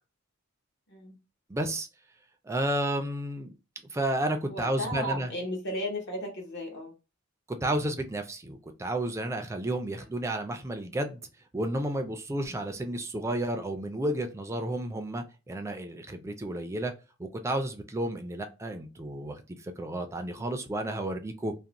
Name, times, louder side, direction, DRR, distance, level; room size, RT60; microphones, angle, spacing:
voice 1, 1.5-1.9 2.4-3.5 3.9-5.3 7.5-11.2 11.5-16.9 17.2-21.5, right 1 dB, 15° right, 0.3 m, -32 dB
voice 2, 4.5-6.9 12.5-12.6 20.4-20.5, equal, 55° left, 0.9 m, -35 dB
2.5 x 2.0 x 2.8 m
head